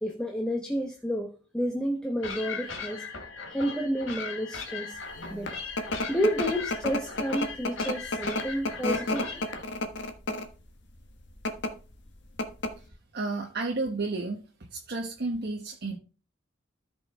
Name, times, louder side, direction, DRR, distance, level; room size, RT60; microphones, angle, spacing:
voice 1, 0.0-3.0 3.5-5.0 5.3-5.6 6.1-9.4, equal, 5° left, 1.0 m, -30 dB
sound 1, 2.2-9.6, left 5 dB, 85° left, 2.7 m, -39 dB
sound 2, 5.2-10.6 11.3-11.7 12.1-12.2 12.4-12.9, left 2 dB, 65° left, 1.3 m, -30 dB
voice 2, 13.1-14.4 14.7-16.0, right 3 dB, 55° right, 1.1 m, -31 dB
14.0 x 5.5 x 3.6 m
head